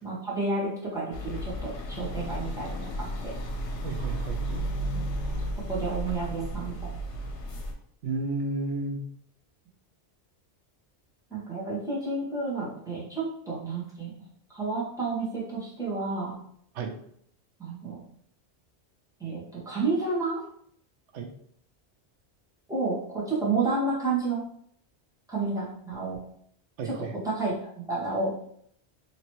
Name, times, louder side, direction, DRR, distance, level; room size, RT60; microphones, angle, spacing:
voice 1, 0.0-3.3 4.9-5.0 5.7-6.9 11.3-14.2 14.5-16.4 17.6-18.0 19.2-20.4 22.7-24.4 25.3-26.2 26.8-26.9 27.2-28.3, right 3 dB, 5° right, -8 dB, 1.1 m, -30 dB
sound 1, 1.1-7.7, equal, 80° left, 0.9 m, -33 dB
voice 2, 3.8-4.7 8.0-9.0 16.7-16.9 21.1-21.3 26.8-27.1, right 3 dB, 85° right, 3 dB, 0.9 m, -32 dB
3.1 x 2.9 x 2.9 m, 0.66 s
omnidirectional pair, 1.2 m